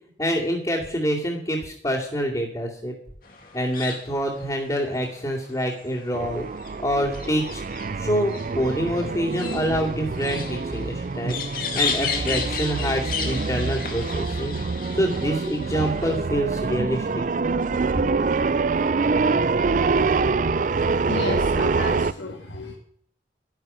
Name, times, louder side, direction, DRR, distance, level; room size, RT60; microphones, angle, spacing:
voice 1, 0.2-2.9 3.5-6.4 6.8-7.6 8.0-14.6 14.9-17.1, equal, 20° left, -6 dB, 2.4 m, -26 dB
sound 1, 3.2-16.3, left 5 dB, 50° left, 2.3 m, -34 dB
sound 2, 6.1-22.1, right 4 dB, 45° right, 0.4 m, -25 dB
voice 2, 20.8-22.7, left 2 dB, 75° left, 0 dB, 1.7 m, -33 dB
12.5 x 10.5 x 5.6 m, 0.68 s
head